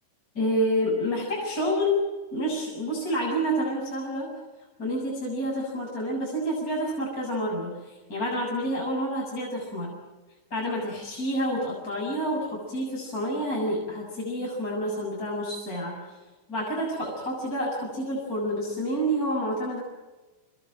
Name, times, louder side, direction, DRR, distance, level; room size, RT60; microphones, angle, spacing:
voice 1, 0.4-2.0 2.3-4.3 4.8-10.0 10.5-16.1 16.5-19.8, equal, 15° left, -3 dB, 7.1 m, -28 dB
26.5 x 20.5 x 9.0 m, 1.2 s
omnidirectional pair, 5.8 m